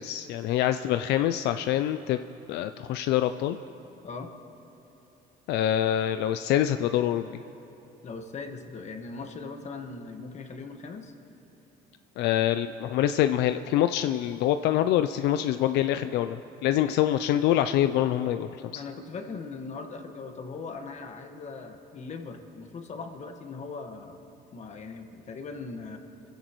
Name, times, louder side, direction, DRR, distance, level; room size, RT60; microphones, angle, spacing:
voice 1, 0.0-2.2 2.5-3.6 5.5-7.3 12.2-18.8, left 12 dB, 85° left, 9 dB, 0.5 m, -25 dB
voice 2, 8.0-11.1 16.8-17.0 18.7-24.2 24.5-26.0, left 4 dB, 45° left, 5 dB, 1.5 m, -39 dB
28.0 x 16.0 x 3.1 m, 3.0 s
cardioid pair, 110°, 17 cm